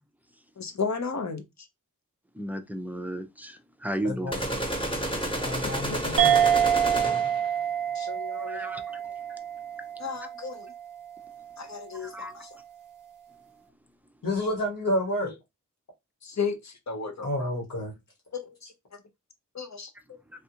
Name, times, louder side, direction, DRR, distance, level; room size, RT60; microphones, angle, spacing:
voice 1, 0.6-1.7 4.5-4.6 5.6-6.0 7.9-8.7 10.0-10.7 11.6-12.6 14.4-14.6 15.2-15.4 16.2-17.5 18.3-18.7 19.5-19.9, left 5 dB, 55° left, 0.7 m, -35 dB
voice 2, 2.3-4.5 8.3-8.8 12.0-12.3, right 1 dB, 5° right, 0.5 m, -34 dB
voice 3, 4.0-4.4 5.2-6.4 14.2-15.3 17.2-17.9, left 1 dB, 75° left, 1.6 m, -30 dB
sound 1, 4.3-7.5, right 1 dB, 15° left, 1.1 m, -30 dB
sound 2, 6.2-11.1, right 9 dB, 65° right, 0.5 m, -26 dB
3.4 x 2.4 x 2.8 m
wide cardioid pair, 70°, 34 cm